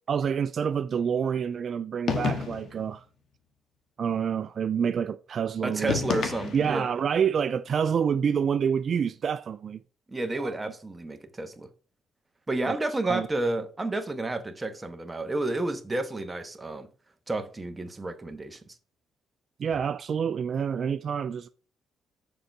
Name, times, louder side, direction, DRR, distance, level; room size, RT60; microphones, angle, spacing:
voice 1, 0.1-3.0 4.0-5.9 6.5-9.8 10.4-10.5 12.7-12.8 13.0-13.3 19.6-21.5, right 7 dB, 50° right, 0.3 m, -27 dB
sound 1, 2.1-2.8 5.9-6.9, left 5 dB, 60° left, 1.4 m, -29 dB
voice 2, 5.6-6.9 10.1-11.7 12.5-16.9 17.3-18.6, right 2 dB, 20° right, 1.1 m, -31 dB
6.8 x 3.9 x 5.4 m
cardioid pair, 90°, 0 cm